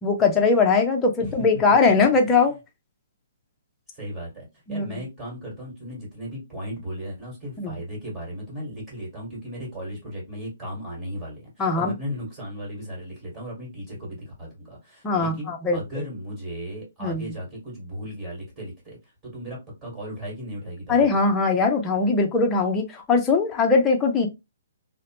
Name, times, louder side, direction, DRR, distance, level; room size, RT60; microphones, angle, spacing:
voice 1, 0.0-2.6 4.7-4.9 7.6-7.7 11.6-11.9 15.0-15.8 17.0-17.2 20.9-24.3, left 4 dB, 15° left, 0.6 m, -20 dB
voice 2, 3.9-19.0 19.2-21.1, equal, 20° right, 1.6 m, -36 dB
2.8 x 2.1 x 2.9 m
hypercardioid pair, 145°, 0 cm